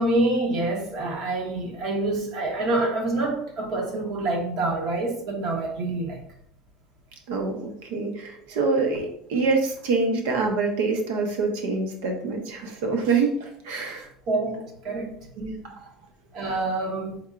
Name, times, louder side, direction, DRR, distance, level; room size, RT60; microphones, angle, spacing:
voice 1, 0.0-6.2 14.3-15.2 16.3-17.2, right 2 dB, 55° right, 1.1 m, -26 dB
voice 2, 7.3-14.1 15.4-15.8, right 4 dB, 80° right, 0.9 m, -26 dB
4.6 x 3.5 x 2.4 m
supercardioid pair, 120°, 0 cm